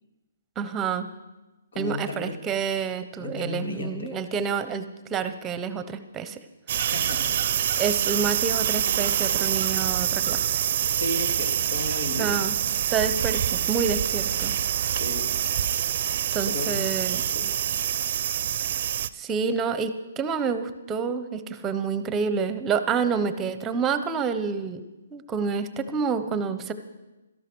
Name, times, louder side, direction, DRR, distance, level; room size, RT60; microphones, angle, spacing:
voice 1, 0.6-1.1 1.8-4.8 5.1-6.4 6.7-6.8 7.8-10.6 12.2-12.5 12.9-14.5 16.3-17.2 18.6-18.7 19.1-24.8 25.1-26.7, right 6 dB, 15° right, 11 dB, 0.9 m, -28 dB
voice 2, 1.7-2.4 3.2-4.2 6.8-7.4 11.0-12.4 14.9-15.3 15.9-16.0 16.5-16.9 17.3-17.5, left 2 dB, 70° left, 3 dB, 3.4 m, -34 dB
sound 1, 6.7-19.1, right 10 dB, 45° right, 0.6 m, -26 dB
17.0 x 13.0 x 6.2 m, 1.1 s
hypercardioid pair, 155°, 0 cm